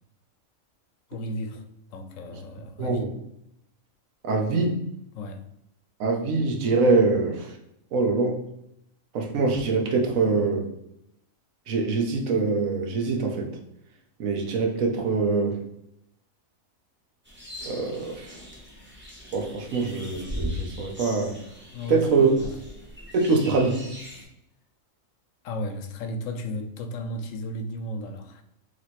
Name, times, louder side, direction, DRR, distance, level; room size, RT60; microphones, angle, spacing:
voice 1, 1.1-1.6 1.9-3.1 5.1-5.4 21.7-22.6 25.4-28.4, left 1 dB, 75° left, 0.9 m, -34 dB
voice 2, 2.8-3.1 4.2-4.8 6.0-7.6 7.9-8.4 9.1-10.7 11.7-13.5 14.2-15.6 17.6-18.4 19.3-21.4 21.9-22.3 23.1-23.9, right 4 dB, 75° right, 1.1 m, -24 dB
sound 1, 17.2-24.2, left 1 dB, 10° right, 0.6 m, -39 dB
3.1 x 3.0 x 4.2 m
omnidirectional pair, 1.4 m